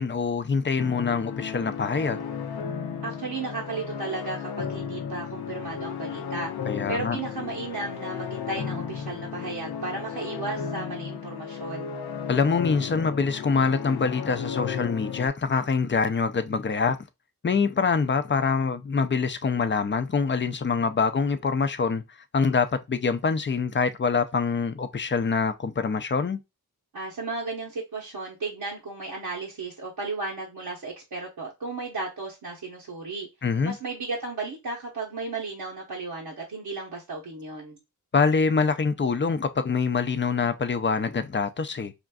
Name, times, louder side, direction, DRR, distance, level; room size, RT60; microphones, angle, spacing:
voice 1, 0.0-2.3 6.7-7.2 12.3-17.0 17.4-22.0 22.3-26.4 33.4-33.8 38.1-41.9, left 5 dB, 30° left, 0.5 m, -25 dB
sound 1, 0.8-15.3, left 7 dB, 90° left, 0.6 m, -34 dB
voice 2, 3.0-6.5 6.9-11.9 26.9-33.3 33.6-37.8, right 3 dB, 80° right, 1.0 m, -34 dB
5.0 x 2.5 x 2.3 m
cardioid pair, 55°, 37 cm